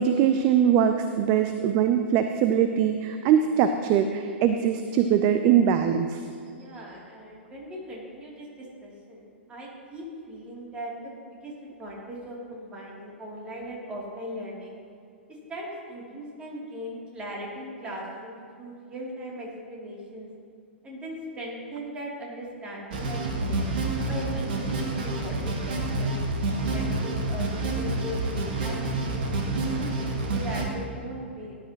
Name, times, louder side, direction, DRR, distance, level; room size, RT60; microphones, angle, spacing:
voice 1, 0.0-6.2, right 8 dB, 35° right, 8 dB, 0.5 m, -22 dB
voice 2, 6.5-11.1 11.4-14.8 15.3-20.3 20.8-23.6 24.1-26.2 26.6-31.5, equal, 15° right, -4 dB, 3.0 m, -39 dB
sound 1, 22.9-30.7, right 2 dB, 50° right, 1.9 m, -28 dB
17.5 x 11.0 x 3.0 m, 2.4 s
figure-of-eight pair, 105°, 6 cm